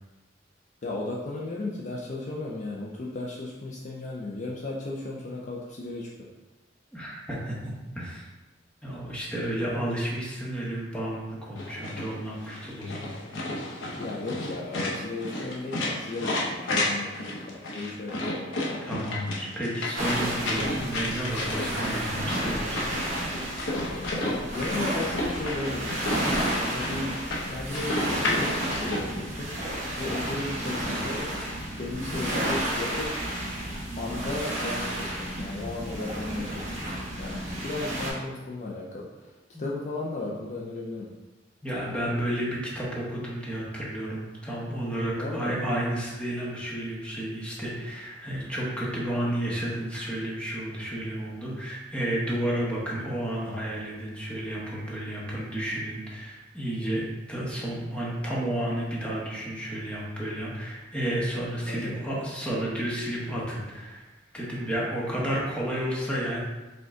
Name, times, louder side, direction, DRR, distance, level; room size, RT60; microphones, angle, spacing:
voice 1, 0.8-6.3 14.0-18.2 24.2-27.2 27.5-29.6 30.0-31.3 31.8-33.1 33.9-36.9 37.2-39.1 39.6-41.1 45.1-45.6 61.7-61.9, left 2 dB, 40° left, -3 dB, 0.4 m, -35 dB
voice 2, 6.9-8.3 8.8-13.1 18.9-22.8 39.5-39.7 41.6-57.0 57.3-64.1 64.3-66.4, right 1 dB, 5° left, -5 dB, 0.9 m, -31 dB
sound 1, 11.6-29.0, left 1 dB, 90° left, 0.8 m, -32 dB
sound 2, 20.0-38.1, right 1 dB, 40° right, 1.4 m, -32 dB
5.1 x 2.3 x 3.6 m, 1.1 s
head